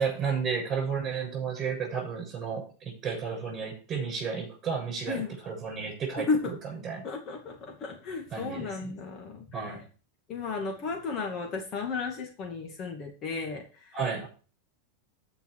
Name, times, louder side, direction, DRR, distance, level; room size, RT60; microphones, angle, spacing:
voice 1, 0.0-6.3 6.6-7.1 8.3-8.9 9.5-9.8 13.9-14.3, right 6 dB, 25° right, 3 dB, 7.5 m, -32 dB
voice 2, 7.0-9.5 10.3-14.0, left 4 dB, 35° left, 2 dB, 2.4 m, -33 dB
15.0 x 5.7 x 4.9 m, 0.37 s
supercardioid pair, 140°, 0 cm